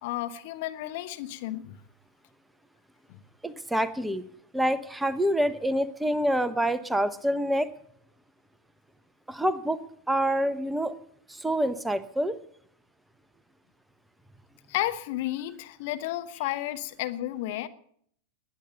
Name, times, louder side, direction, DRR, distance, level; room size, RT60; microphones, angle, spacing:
voice 1, 0.0-1.8 3.1-3.2 14.7-17.7, left 15 dB, 50° left, 1.1 m, -32 dB
voice 2, 3.4-4.2 4.5-7.7 9.3-10.9 11.3-12.4, equal, 5° right, 0.9 m, -27 dB
20.5 x 9.4 x 6.9 m
figure-of-eight pair, 90°, 0 cm